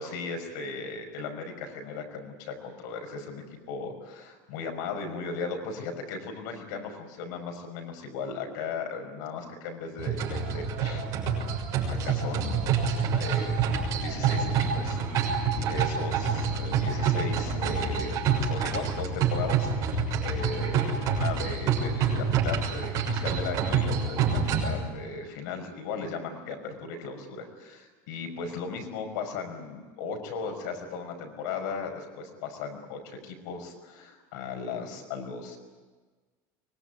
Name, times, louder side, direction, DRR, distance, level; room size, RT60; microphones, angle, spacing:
voice 1, 0.0-11.1 11.9-12.9 13.2-13.6 13.9-35.6, left 4 dB, 75° left, 5 dB, 5.6 m, -37 dB
sound 1, 10.0-24.8, right 6 dB, 35° right, 6.8 m, -27 dB
24.5 x 22.5 x 9.4 m, 1.3 s
cardioid pair, 180°, 10 cm